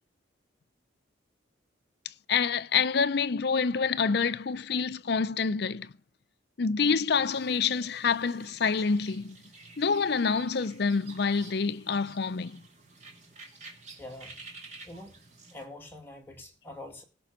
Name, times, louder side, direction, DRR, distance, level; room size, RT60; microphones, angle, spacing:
voice 1, 2.3-5.9 6.6-9.4 9.8-12.6, left 5 dB, 55° left, 0.5 m, -27 dB
sound 1, 7.2-15.7, right 3 dB, 35° right, 2.5 m, -51 dB
voice 2, 14.0-14.4 14.9-15.1 15.5-17.0, left 1 dB, 10° left, 2.3 m, -44 dB
17.5 x 6.0 x 6.7 m
head